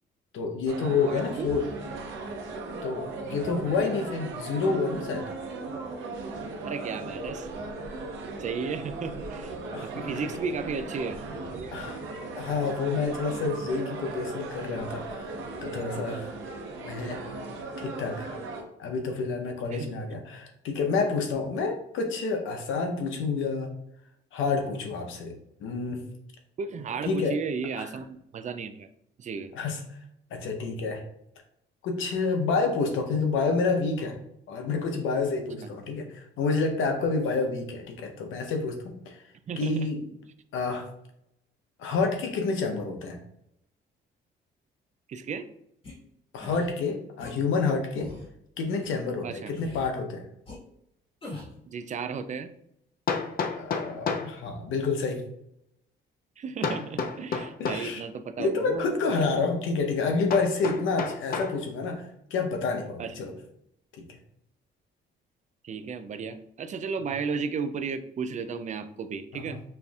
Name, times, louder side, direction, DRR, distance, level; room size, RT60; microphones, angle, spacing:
voice 1, 0.3-1.6 2.8-5.3 9.7-10.1 11.7-12.0 12.4-16.3 16.8-17.2 17.8-18.3 18.8-23.7 24.3-25.3 25.6-26.1 27.0-27.3 27.8-27.9 29.5-29.8 30.3-31.0 31.8-34.2 34.5-39.2 39.6-40.0 40.5-40.9 41.8-43.2 46.3-48.1 48.6-50.3 53.5-55.2 57.6-58.0 58.4-63.3 69.3-69.6, left 4 dB, 80° left, 4 dB, 0.8 m, -29 dB
sound 1, 0.7-18.6, right 3 dB, 80° right, 0.8 m, -37 dB
voice 2, 1.1-1.5 6.6-7.5 8.4-9.6 9.8-11.2 11.5-11.8 19.7-20.0 26.6-28.9 29.2-29.5 39.5-39.9 45.1-45.5 49.2-49.5 51.7-52.5 56.4-58.9 63.0-63.2 65.6-69.6, right 5 dB, 40° right, 10 dB, 0.4 m, -34 dB
sound 2, 45.8-45.9 46.4-46.7 47.2-47.3 47.9-48.3 48.8-48.9 49.5-49.9 50.5-50.6 51.2-51.6, left 2 dB, 30° left, 1.4 m, -40 dB
Hammer, 51.5-51.6 53.1-54.4 56.6-57.9 60.3-61.6, left 5 dB, 50° left, 0.5 m, -31 dB
5.4 x 2.5 x 2.3 m, 0.78 s
cardioid pair, 90°, 20 cm